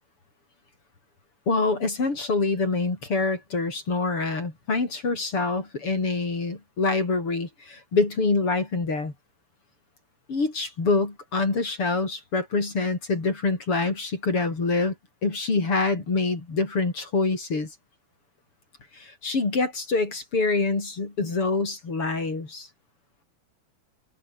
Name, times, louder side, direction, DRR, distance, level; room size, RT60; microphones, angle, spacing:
voice 1, 1.5-9.1 10.3-15.0 15.2-17.7 18.9-22.7, left 3 dB, 45° left, 5.7 m, -25 dB
omnidirectional pair, 3.4 m